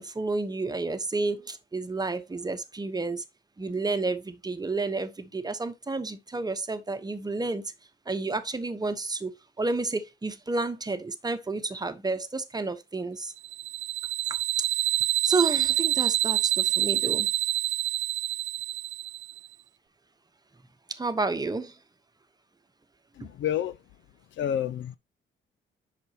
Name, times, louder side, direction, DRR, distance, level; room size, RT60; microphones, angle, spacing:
voice 1, 0.0-3.2 3.6-7.7 8.1-13.3 14.3-14.4 15.2-17.3 20.9-21.8, right 3 dB, 20° right, 1.0 m, -30 dB
sound 1, 13.4-19.4, right 14 dB, 75° right, 0.5 m, -27 dB
voice 2, 23.2-23.8 24.4-25.0, left 10 dB, 70° left, 0.6 m, -29 dB
7.9 x 6.0 x 2.9 m
cardioid pair, 90°, 20 cm